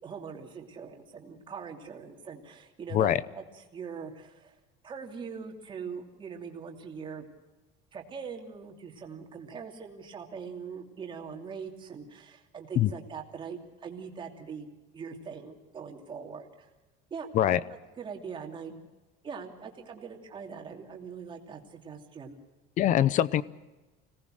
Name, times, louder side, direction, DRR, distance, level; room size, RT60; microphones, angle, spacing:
voice 1, 0.0-3.4 3.7-4.5 4.8-7.2 7.9-16.7 17.1-17.5 18.0-18.8 19.2-22.4, right 6 dB, 25° right, 2 dB, 2.8 m, -42 dB
voice 2, 2.9-3.2 12.8-12.9 17.3-17.6 22.8-23.4, left 11 dB, 35° left, 19 dB, 0.7 m, -23 dB
25.5 x 18.5 x 6.4 m, 1.1 s
cardioid pair, 165°, 21 cm